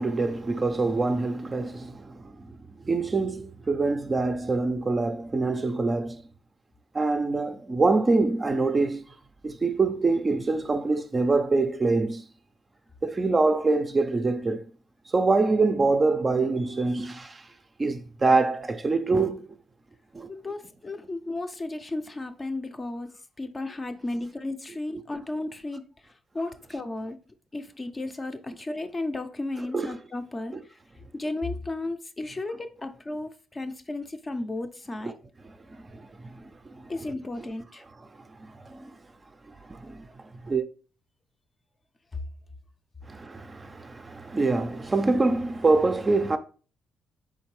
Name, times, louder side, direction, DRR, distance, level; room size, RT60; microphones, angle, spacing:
voice 1, 0.0-2.6 2.9-6.2 6.9-9.0 9.4-12.2 13.0-14.6 15.1-17.4 17.8-19.5 20.1-20.3 29.7-29.9 35.0-35.1 35.4-36.9 38.4-38.9 39.5-40.1 40.4-40.6 43.1-46.4, right 3 dB, 25° right, 0.4 m, -25 dB
voice 2, 20.3-25.8 26.3-27.2 27.5-30.5 31.1-35.1 36.9-37.8, left 2 dB, 25° left, 0.5 m, -34 dB
4.2 x 3.7 x 3.1 m
cardioid pair, 90°, 0 cm